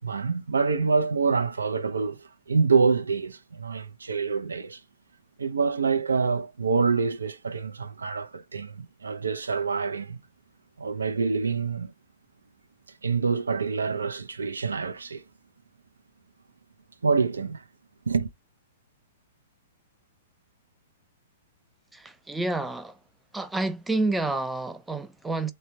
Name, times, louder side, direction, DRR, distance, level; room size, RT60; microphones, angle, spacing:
voice 1, 0.0-2.2 2.5-4.8 5.4-10.2 10.8-11.9 13.0-15.2 17.0-17.6 18.1-18.3, right 5 dB, 85° right, 0.4 m, -26 dB
voice 2, 21.9-23.0 23.3-25.5, right 2 dB, 5° right, 0.4 m, -29 dB
3.3 x 2.1 x 2.8 m
hypercardioid pair, 115°, 0 cm